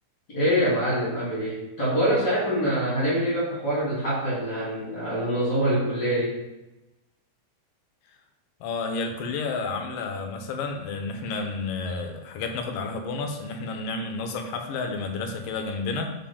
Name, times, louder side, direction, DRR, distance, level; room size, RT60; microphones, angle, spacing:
voice 1, 0.3-6.4, equal, 30° left, -8 dB, 2.8 m, -25 dB
voice 2, 8.6-16.1, left 4 dB, 75° left, 4 dB, 2.4 m, -31 dB
7.4 x 5.4 x 3.5 m, 1.0 s
omnidirectional pair, 4.5 m